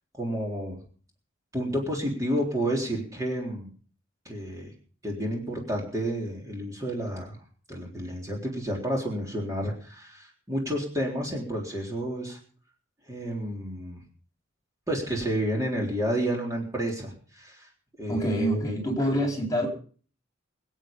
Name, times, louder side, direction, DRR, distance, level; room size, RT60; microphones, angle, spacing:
voice 1, 0.2-0.8 1.5-3.7 4.3-4.7 5.0-7.4 7.7-12.4 13.1-14.0 14.9-17.7 18.0-18.8, equal, 15° right, -1 dB, 3.7 m, -30 dB
voice 2, 18.1-19.7, right 1 dB, 20° left, 1 dB, 4.4 m, -26 dB
24.0 x 8.3 x 5.4 m, 0.43 s
head